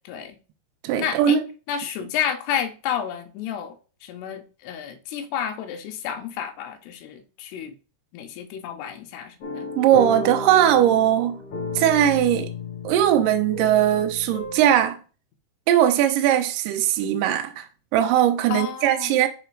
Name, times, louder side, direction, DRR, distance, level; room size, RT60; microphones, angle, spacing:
voice 1, 0.1-0.4 1.0-1.4 1.7-7.7 8.1-9.7 18.5-19.2, left 9 dB, 80° left, 2.8 m, -31 dB
voice 2, 0.8-1.4 9.8-11.4 11.8-12.5 12.8-15.0 15.7-17.7 17.9-19.3, right 11 dB, 80° right, 1.9 m, -19 dB
sound 1, 9.4-14.9, left 3 dB, 55° left, 1.7 m, -34 dB
6.0 x 4.1 x 4.6 m
omnidirectional pair, 4.9 m